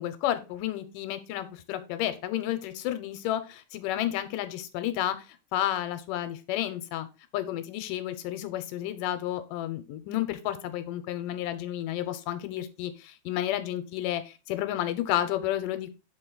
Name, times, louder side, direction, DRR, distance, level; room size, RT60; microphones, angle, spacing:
voice 1, 0.0-5.3 5.5-7.1 7.3-15.9, left 12 dB, 80° left, 10 dB, 2.2 m, -31 dB
6.9 x 4.3 x 3.9 m, 0.30 s
omnidirectional pair, 4.0 m